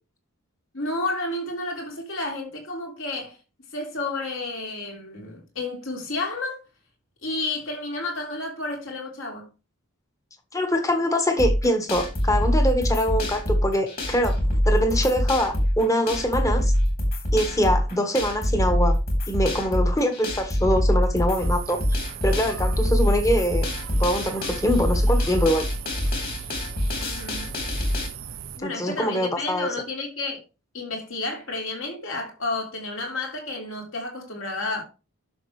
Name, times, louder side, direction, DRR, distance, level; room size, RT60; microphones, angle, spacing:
voice 1, 0.7-3.4 3.7-6.6 7.2-9.5 26.9-27.6 28.5-30.4 30.7-34.8, left 2 dB, 60° left, 3.6 m, -31 dB
voice 2, 10.5-14.4 14.6-16.7 17.3-19.0 19.3-21.8 22.2-23.7 23.9-25.7 28.6-29.7, equal, 15° left, 1.4 m, -24 dB
sound 1, 11.4-28.1, equal, 40° left, 3.5 m, -24 dB
sound 2, 21.4-28.6, right 8 dB, 70° right, 0.7 m, -39 dB
11.0 x 6.6 x 3.2 m
head